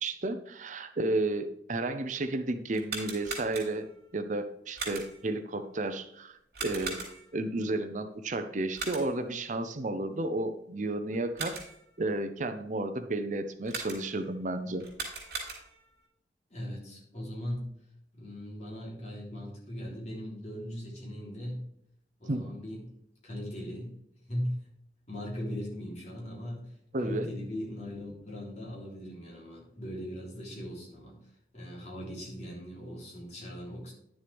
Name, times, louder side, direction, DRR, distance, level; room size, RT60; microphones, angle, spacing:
voice 1, 0.0-3.9 4.1-7.0 7.3-11.6 12.0-14.8 22.3-22.4 26.9-27.3, right 2 dB, 45° right, 9 dB, 0.7 m, -32 dB
sound 1, 2.7-4.0 4.8-5.3 6.5-7.4 8.7-9.3 11.1-11.9 13.7-14.3 14.8-15.9, right 4 dB, 60° right, 4.1 m, -39 dB
voice 2, 16.5-17.7 18.1-21.7 22.2-22.9 23.2-23.9 24.3-24.6 25.1-26.7 27.0-31.2 31.5-33.9, equal, 40° left, -4 dB, 3.5 m, -39 dB
11.0 x 7.1 x 3.5 m, 0.76 s
head